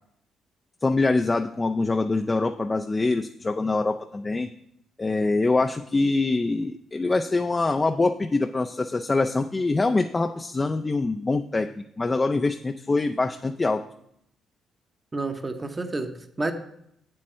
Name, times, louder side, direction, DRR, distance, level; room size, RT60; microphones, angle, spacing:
voice 1, 0.8-4.5 5.0-11.7 12.0-13.8, left 3 dB, 25° left, 6 dB, 0.4 m, -24 dB
voice 2, 15.1-16.5, right 2 dB, 25° right, 7 dB, 0.8 m, -30 dB
7.6 x 7.5 x 4.4 m, 0.75 s
cardioid pair, 90°, 0 cm